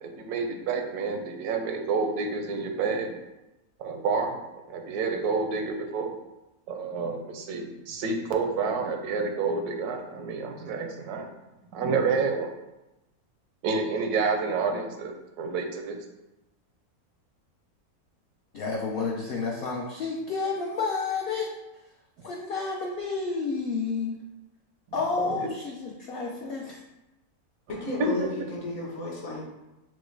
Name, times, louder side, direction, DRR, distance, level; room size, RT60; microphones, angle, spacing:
voice 1, 0.0-3.1 3.8-4.4 4.7-6.1 6.7-11.3 11.7-12.5 13.6-16.0 25.2-25.5 27.8-28.1, right 4 dB, 90° right, 4 dB, 1.1 m, -29 dB
voice 2, 18.5-21.5 22.2-24.2 24.9-26.8, left 4 dB, 75° left, -1 dB, 0.5 m, -30 dB
voice 3, 27.7-29.5, left 1 dB, 55° left, -1 dB, 1.2 m, -32 dB
6.1 x 2.2 x 3.2 m, 0.97 s
omnidirectional pair, 1.6 m